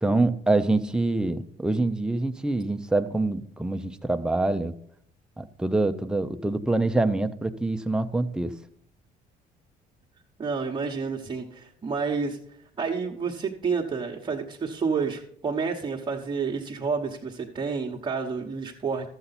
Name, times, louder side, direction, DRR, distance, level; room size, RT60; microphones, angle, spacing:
voice 1, 0.0-4.7 5.4-8.5, right 2 dB, 5° right, 8 dB, 0.6 m, -25 dB
voice 2, 10.4-12.4 12.8-19.1, right 5 dB, 30° right, -2 dB, 1.1 m, -29 dB
12.0 x 7.9 x 4.1 m, 0.66 s
cardioid pair, 110°, 17 cm